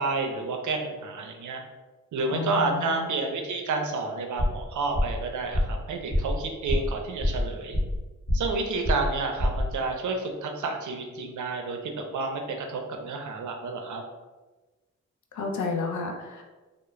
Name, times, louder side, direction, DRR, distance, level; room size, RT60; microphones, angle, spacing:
voice 1, 0.0-1.6 2.1-7.8 8.3-12.4 12.7-14.0, right 3 dB, 75° right, 3 dB, 0.5 m, -30 dB
voice 2, 2.3-3.1 15.3-16.4, left 4 dB, 75° left, 2 dB, 0.5 m, -31 dB
sound 1, 4.4-4.7 4.9-5.2 5.5-5.8 6.1-6.4 6.7-6.9 7.2-8.0 8.3-8.6 8.8-9.1 9.4-9.7, left 1 dB, 35° left, 1.0 m, -25 dB
2.3 x 2.0 x 3.0 m, 1.2 s
cardioid pair, 70°, 30 cm